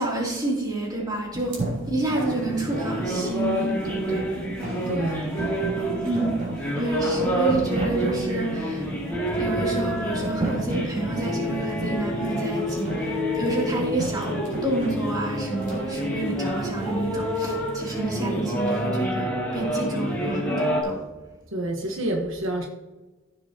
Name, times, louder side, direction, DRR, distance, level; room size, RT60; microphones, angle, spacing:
voice 1, 0.0-1.6 1.9-4.3 6.0-6.4 6.7-8.9 9.4-14.3 14.6-21.0, right 2 dB, 20° right, -3 dB, 2.9 m, -29 dB
sound 1, 1.3-17.6, right 2 dB, 40° right, 3.4 m, -34 dB
sound 2, 2.2-20.8, equal, 10° left, 2.5 m, -28 dB
voice 2, 4.9-5.5 21.5-22.7, right 1 dB, 75° right, 2 dB, 1.2 m, -28 dB
14.5 x 7.0 x 2.9 m, 1.1 s
head